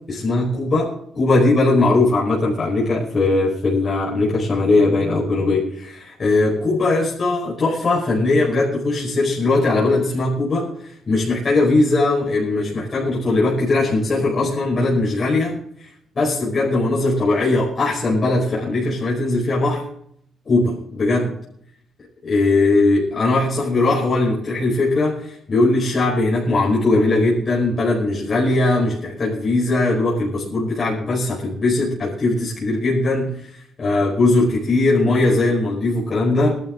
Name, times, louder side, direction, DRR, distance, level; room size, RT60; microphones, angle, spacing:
voice 1, 0.1-15.9 16.1-19.8 20.4-21.3 22.2-36.6, left 2 dB, 35° left, -6 dB, 5.0 m, -19 dB
20.5 x 12.0 x 3.8 m, 0.69 s
cardioid pair, 145°, 0 cm